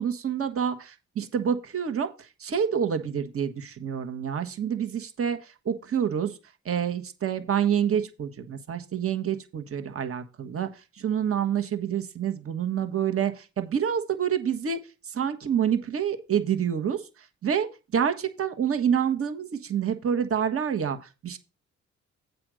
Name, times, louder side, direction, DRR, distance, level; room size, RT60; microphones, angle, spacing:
voice 1, 0.0-2.1 2.4-6.4 6.6-10.7 11.0-14.8 15.1-17.0 17.4-17.7 17.9-21.4, right 8 dB, 50° right, 8 dB, 1.5 m, -27 dB
7.7 x 5.2 x 6.3 m, 0.30 s
cardioid pair, 90°, 30 cm